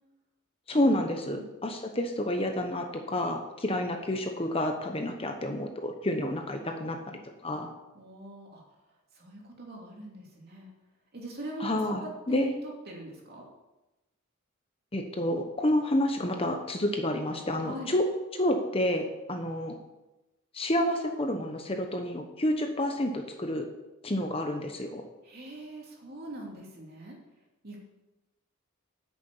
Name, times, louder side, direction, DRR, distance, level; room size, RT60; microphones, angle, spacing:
voice 1, 0.7-7.0 7.4-7.7 11.6-12.5 14.9-18.1 18.3-19.8 20.5-23.7 24.0-25.0, left 1 dB, 25° left, 4 dB, 1.0 m, -29 dB
voice 2, 7.9-8.6 9.1-10.7 11.1-13.4 17.6-17.9 25.2-27.1 27.6-27.8, right 2 dB, 45° right, -1 dB, 2.9 m, -42 dB
9.4 x 6.9 x 8.4 m, 1.0 s
head